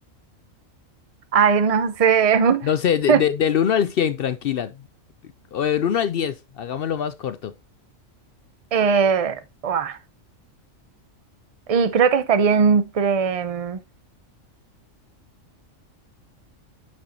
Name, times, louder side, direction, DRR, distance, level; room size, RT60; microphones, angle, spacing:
voice 1, 1.3-2.7 3.1-3.2 8.7-10.0 11.7-13.8, right 6 dB, 35° right, 0.7 m, -19 dB
voice 2, 2.6-4.8 5.5-7.5, left 8 dB, 65° left, 0.6 m, -23 dB
8.7 x 6.2 x 2.9 m
omnidirectional pair, 1.4 m